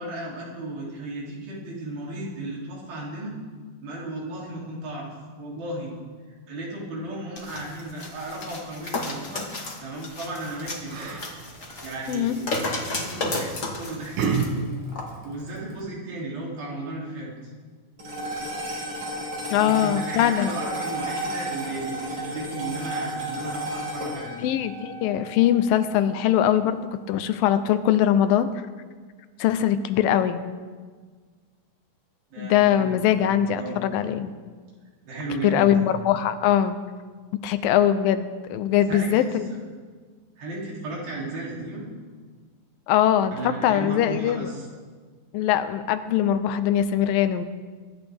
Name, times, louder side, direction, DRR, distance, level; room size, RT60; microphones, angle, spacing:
voice 1, 0.0-3.3 3.8-5.1 5.4-5.9 6.5-9.5 9.8-11.2 11.8-13.5 13.8-14.2 15.2-17.5 19.6-24.4 32.3-33.3 33.5-33.8 35.0-35.8 38.9-39.3 40.4-41.8 43.3-44.7, right 2 dB, 85° right, -4 dB, 4.9 m, -34 dB
sound 1, 7.3-14.5 14.9-15.0, left 2 dB, 45° left, 0.9 m, -33 dB
Yell, 10.3-15.8, right 4 dB, 65° right, 2.7 m, -33 dB
sound 2, 18.0-26.5, right 1 dB, 45° right, 5.6 m, -33 dB
voice 2, 19.5-20.6 24.4-28.6 29.4-30.4 32.4-34.3 35.4-36.8 37.4-39.5 42.9-44.5 45.3-47.5, left 10 dB, 85° left, 11 dB, 2.4 m, -22 dB
23.0 x 11.0 x 3.5 m, 1.5 s
omnidirectional pair, 4.1 m